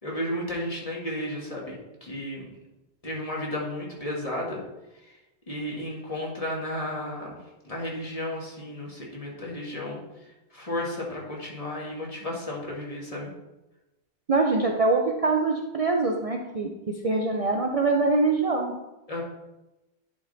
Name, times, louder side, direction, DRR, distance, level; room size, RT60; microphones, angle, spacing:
voice 1, 0.0-2.5 3.0-4.6 5.0-5.2 5.5-7.4 7.6-10.0 10.5-13.3 19.1-19.2, left 1 dB, 35° left, -3 dB, 1.7 m, -33 dB
voice 2, 14.3-16.7 17.0-18.7, right 3 dB, 45° right, 2 dB, 0.6 m, -24 dB
10.0 x 3.7 x 4.0 m, 1.0 s
omnidirectional pair, 1.1 m